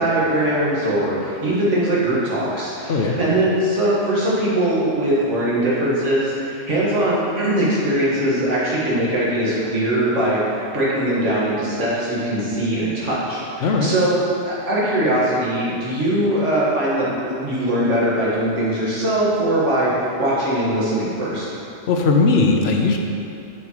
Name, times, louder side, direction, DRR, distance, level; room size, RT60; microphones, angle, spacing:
voice 1, 0.0-10.4 10.7-14.2 14.4-19.9 20.2-21.4, right 1 dB, 85° right, -8 dB, 1.8 m, -21 dB
voice 2, 13.6-13.9 21.9-23.0, left 3 dB, 65° left, 2 dB, 0.8 m, -18 dB
7.2 x 5.5 x 3.0 m, 2.6 s
omnidirectional pair, 1.2 m